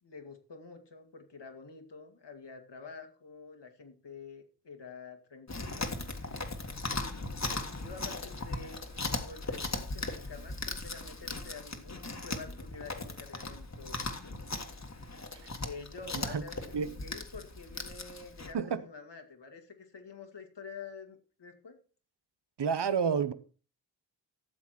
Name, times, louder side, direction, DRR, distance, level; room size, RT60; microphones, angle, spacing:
voice 1, 0.0-5.9 6.8-7.2 7.4-14.0 14.2-14.6 15.6-21.8, left 4 dB, 75° left, 2.3 m, -48 dB
Chewing mastication, 5.5-18.5, left 2 dB, 40° left, 1.8 m, -38 dB
voice 2, 22.6-23.3, right 6 dB, 70° right, 0.9 m, -29 dB
13.0 x 7.5 x 4.4 m
wide cardioid pair, 65°, 43 cm